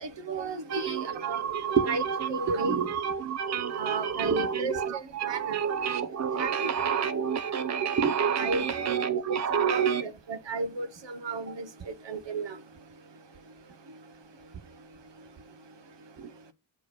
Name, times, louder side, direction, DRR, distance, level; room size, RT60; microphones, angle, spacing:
voice 1, 0.0-1.4 1.8-2.0 2.3-2.7 3.8-5.6 6.4-6.7 7.0-7.1 8.4-8.9 9.7-11.7 12.1-12.5, right 3 dB, 60° right, 1.1 m, -33 dB
voice 2, 0.7-10.0 16.2-16.3, right 7 dB, 35° right, 0.7 m, -29 dB
7.3 x 3.4 x 6.3 m
cardioid pair, 55°, 48 cm